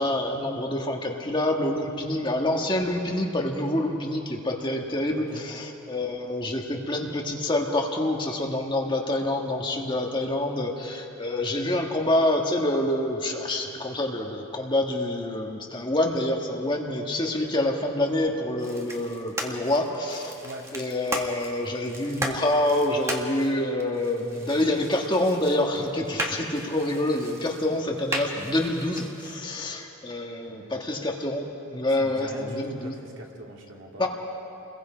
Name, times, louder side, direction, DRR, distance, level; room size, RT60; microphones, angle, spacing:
voice 1, 0.0-20.3 20.7-33.0 34.0-34.1, left 1 dB, 20° left, 1 dB, 1.5 m, -27 dB
voice 2, 5.1-5.5 17.2-17.5 20.4-20.7 30.5-30.8 32.0-34.1, equal, 65° right, -1 dB, 2.6 m, -42 dB
sound 1, 18.6-29.4, right 1 dB, 15° right, 1.6 m, -36 dB
29.0 x 22.0 x 5.0 m, 2.9 s
head